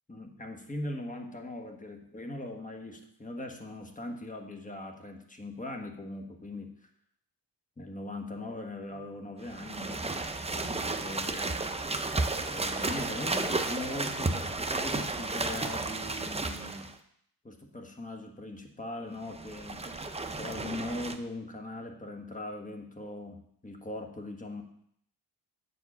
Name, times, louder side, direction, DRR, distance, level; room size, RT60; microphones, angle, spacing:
voice 1, 0.1-6.8 7.8-11.6 12.5-16.9 17.4-20.0 20.4-24.6, left 2 dB, 20° left, 3 dB, 1.2 m, -40 dB
sound 1, 9.4-16.9 19.2-21.2, right 3 dB, 15° right, 0.6 m, -33 dB
8.0 x 4.8 x 6.0 m, 0.69 s
wide cardioid pair, 95°, 42 cm